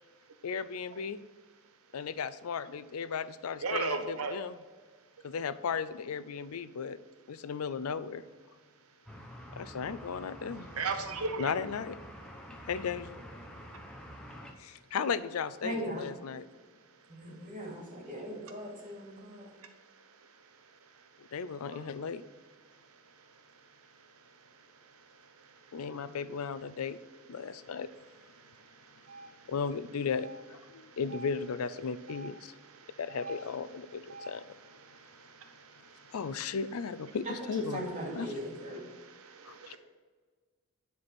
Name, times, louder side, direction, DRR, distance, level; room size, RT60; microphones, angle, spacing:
voice 1, 0.4-1.2 1.9-4.5 5.2-7.0 7.3-8.2 9.6-10.7 11.4-12.0 12.7-13.2 14.6-16.5 21.2-22.2 25.7-27.0 27.3-27.9 29.5-32.5 33.0-34.4 36.1-37.9 38.2-38.3 39.4-39.8, left 6 dB, 85° left, 14 dB, 0.5 m, -35 dB
voice 2, 3.6-4.4 10.8-11.5 29.1-29.3 32.1-32.3 33.1-33.5 34.1-34.3 39.6-39.8, right 4 dB, 85° right, 7 dB, 0.8 m, -35 dB
sound 1, 9.1-14.5, equal, 5° left, 0.9 m, -47 dB
voice 3, 15.6-16.1 17.1-19.5 21.7-21.8 37.2-38.8, equal, 35° right, -4 dB, 3.0 m, -39 dB
9.9 x 4.7 x 6.1 m, 1.5 s
head